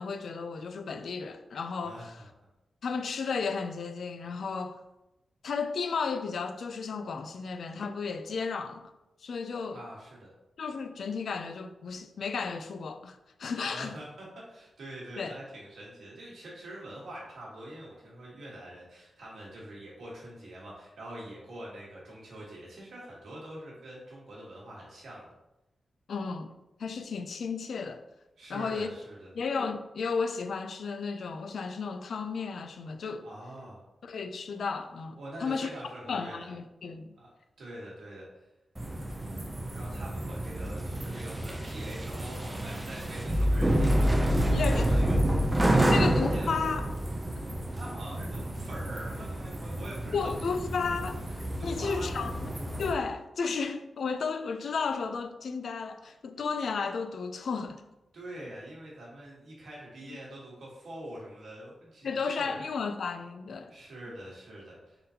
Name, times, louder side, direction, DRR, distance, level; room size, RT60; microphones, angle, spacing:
voice 1, 0.0-2.2 2.8-4.8 5.4-8.9 9.2-9.8 10.6-13.9 15.2-15.3 26.1-26.5 26.8-28.0 28.5-28.9 29.4-33.3 34.0-35.7 36.1-37.1 44.5-45.0 45.9-46.9 47.5-47.6 50.1-51.2 51.6-52.3 52.8-57.8 60.1-60.2 62.0-63.7, left 5 dB, 65° left, 0.3 m, -33 dB
voice 2, 1.8-2.3 9.7-10.3 13.7-25.3 28.4-29.3 33.2-33.8 35.2-36.5 37.2-37.3 37.6-38.3 39.7-46.6 47.7-50.2 51.6-52.3 58.1-62.6 63.7-65.0, right 1 dB, 80° right, 1.4 m, -45 dB
sound 1, 38.8-52.9, right 1 dB, 15° right, 0.4 m, -29 dB
3.8 x 3.6 x 2.8 m
wide cardioid pair, 165°, 0 cm